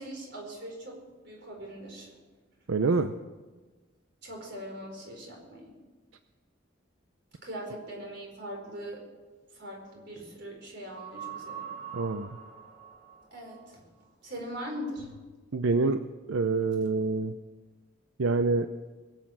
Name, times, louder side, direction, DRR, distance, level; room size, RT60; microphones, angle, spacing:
voice 1, 0.0-2.1 4.2-5.7 7.4-9.0 9.5-11.7 13.3-13.8 14.2-15.1, equal, 55° right, 0 dB, 4.7 m, -41 dB
voice 2, 2.7-3.1 11.9-12.3 15.5-16.0 16.3-17.4 18.2-18.7, right 3 dB, 85° right, 9 dB, 0.6 m, -26 dB
sound 1, 11.0-13.6 15.0-15.2, right 8 dB, 40° right, 5.8 m, -43 dB
21.5 x 8.3 x 7.5 m, 1.3 s
head